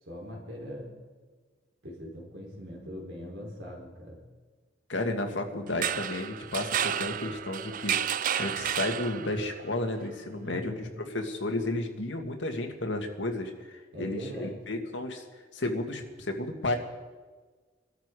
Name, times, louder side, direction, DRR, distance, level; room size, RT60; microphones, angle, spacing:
voice 1, 0.1-0.9 1.8-4.2 10.4-11.1 13.9-14.6, equal, 80° right, -2 dB, 4.6 m, -40 dB
voice 2, 4.9-8.0 8.4-10.7 11.1-15.2 15.5-16.7, left 2 dB, 85° left, 4 dB, 2.0 m, -32 dB
sound 1, 5.7-9.5, right 9 dB, 45° right, 0.4 m, -31 dB
22.5 x 13.0 x 4.9 m, 1.4 s
head